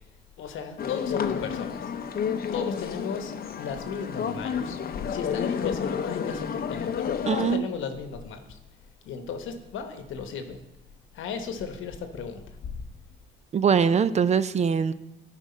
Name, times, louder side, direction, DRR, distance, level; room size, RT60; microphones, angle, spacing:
voice 1, 0.4-1.9 2.5-4.8 5.1-8.6 9.0-10.6 11.1-12.8, left 6 dB, 80° left, 7 dB, 1.0 m, -35 dB
sound 1, 0.8-7.6, left 7 dB, 50° left, 0.6 m, -30 dB
voice 2, 7.3-7.7 13.5-14.9, right 6 dB, 35° right, 14 dB, 0.4 m, -22 dB
11.0 x 5.0 x 4.2 m, 0.93 s
cardioid pair, 90°, 20 cm